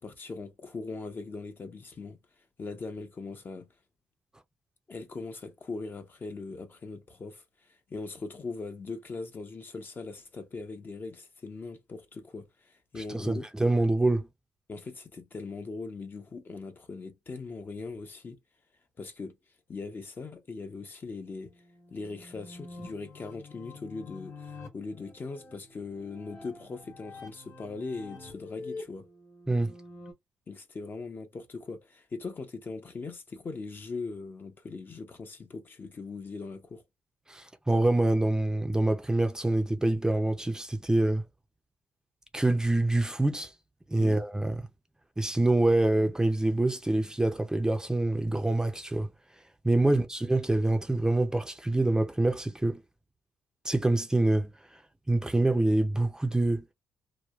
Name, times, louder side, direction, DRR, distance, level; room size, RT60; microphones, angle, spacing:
voice 1, 0.0-2.2 2.6-3.7 4.9-13.5 14.7-18.4 19.0-19.3 19.7-21.5 21.9-29.0 30.5-36.8 44.0-44.2 49.8-50.0, left 3 dB, 35° left, 0.7 m, -40 dB
voice 2, 12.9-14.3 29.5-29.7 37.3-41.2 42.3-43.5 43.9-44.6 45.2-49.1 49.6-52.8 53.6-54.5 55.1-56.6, right 2 dB, 10° right, 0.6 m, -26 dB
sound 1, 21.3-30.1, left 3 dB, 55° left, 1.3 m, -47 dB
3.0 x 2.1 x 2.4 m
supercardioid pair, 70°, 6 cm